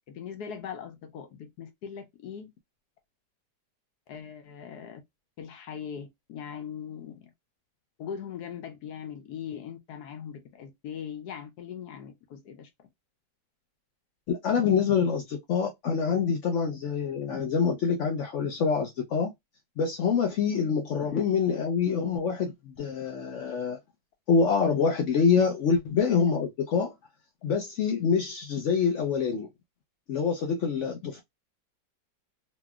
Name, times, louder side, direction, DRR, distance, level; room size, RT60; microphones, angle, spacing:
voice 1, 0.1-2.5 4.1-5.0 5.4-7.3 8.0-12.9 21.1-21.2 21.6-21.7, left 8 dB, 70° left, 1.1 m, -40 dB
voice 2, 14.3-19.3 19.8-23.8 24.3-26.9 27.4-29.5 30.1-31.2, left 6 dB, 85° left, 0.6 m, -26 dB
3.0 x 2.9 x 2.3 m
omnidirectional pair, 1.9 m